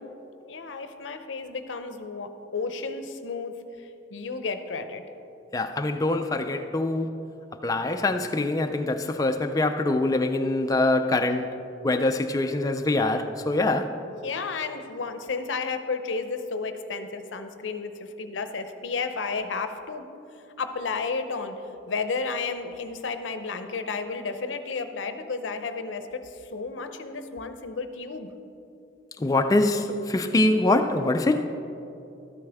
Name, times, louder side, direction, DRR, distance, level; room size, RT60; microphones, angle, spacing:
voice 1, 0.5-5.0 14.2-20.1 20.6-28.3, left 4 dB, 90° left, 0.7 m, -32 dB
voice 2, 5.5-7.1 7.6-11.5 11.8-14.0 29.2-31.5, left 2 dB, 20° left, 0.4 m, -24 dB
12.5 x 8.8 x 3.4 m
head